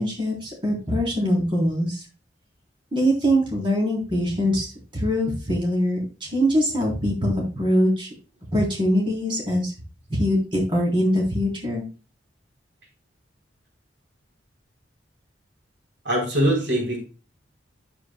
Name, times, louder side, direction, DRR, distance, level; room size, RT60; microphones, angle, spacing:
voice 1, 0.0-2.0 2.9-4.7 4.9-8.1 8.5-9.7 10.1-11.8, equal, 30° right, 3.5 m, -23 dB
voice 2, 16.1-17.0, right 1 dB, 75° right, 3.7 m, -22 dB
9.6 x 8.2 x 2.2 m
head